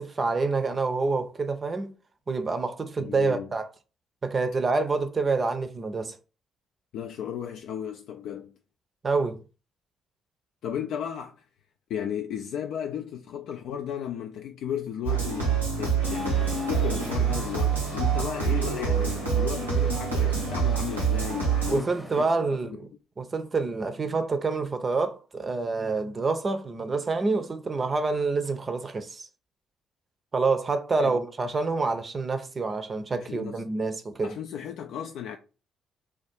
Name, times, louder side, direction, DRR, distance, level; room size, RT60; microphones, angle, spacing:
voice 1, 0.0-1.9 2.3-3.7 4.2-6.2 9.0-9.4 21.7-22.9 23.2-29.3 30.3-34.3, right 3 dB, 35° right, 0.5 m, -27 dB
voice 2, 3.0-3.5 6.9-8.5 10.6-11.4 11.9-22.2 22.6-22.9 31.0-31.2 33.3-33.6 34.2-35.4, left 9 dB, 60° left, 0.3 m, -35 dB
sound 1, 15.0-21.8, right 6 dB, 90° right, 0.8 m, -26 dB
Traffic noise roadway noise, 16.0-22.3, equal, ahead, 0.7 m, -43 dB
3.5 x 2.3 x 4.4 m
figure-of-eight pair, 45°, 0 cm